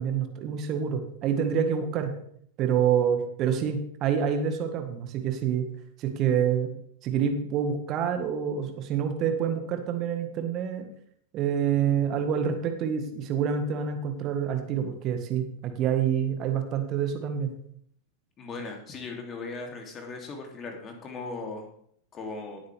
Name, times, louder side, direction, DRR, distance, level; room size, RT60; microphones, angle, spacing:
voice 1, 0.0-2.1 2.6-5.6 6.0-6.7 7.0-10.9 11.3-17.5, right 8 dB, 35° right, 6 dB, 1.7 m, -27 dB
voice 2, 18.4-21.7 22.1-22.6, left 3 dB, 25° left, 2 dB, 2.9 m, -38 dB
17.0 x 8.7 x 3.5 m, 0.66 s
figure-of-eight pair, 90°, 0 cm